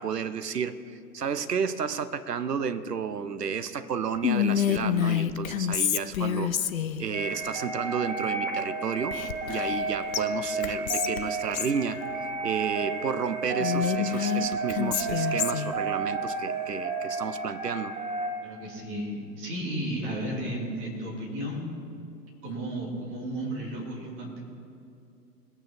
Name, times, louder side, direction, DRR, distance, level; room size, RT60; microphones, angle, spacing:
voice 1, 0.0-6.7 7.0-9.2 9.5-12.0 12.4-17.9, right 6 dB, 70° right, 12 dB, 0.9 m, -32 dB
Whispering, 4.2-7.1 9.1-9.8 10.1-10.2 10.6-11.8 13.6-15.7, left 9 dB, 55° left, 0.7 m, -27 dB
sound 1, 7.1-18.3, right 4 dB, 50° right, 2.4 m, -32 dB
voice 2, 18.4-21.6 22.4-24.4, right 1 dB, 25° right, -3 dB, 2.7 m, -33 dB
21.0 x 8.9 x 4.3 m, 2.6 s
figure-of-eight pair, 120°, 50 cm